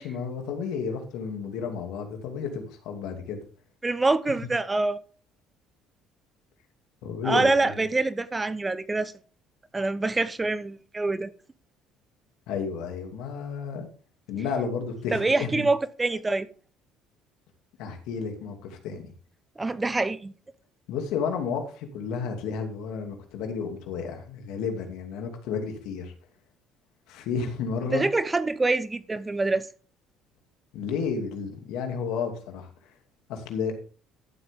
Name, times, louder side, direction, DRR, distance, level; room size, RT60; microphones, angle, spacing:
voice 1, 0.0-3.4 7.0-7.7 12.5-13.9 14.3-15.7 17.8-19.1 20.9-26.1 27.1-28.1 30.7-32.7 33.3-33.7, left 6 dB, 75° left, 2.6 m, -32 dB
voice 2, 3.8-5.0 7.2-9.1 9.7-11.3 15.1-16.5 19.6-20.3 27.9-29.7, right 3 dB, 20° right, 0.8 m, -25 dB
13.0 x 7.8 x 3.6 m
supercardioid pair, 75°, 0 cm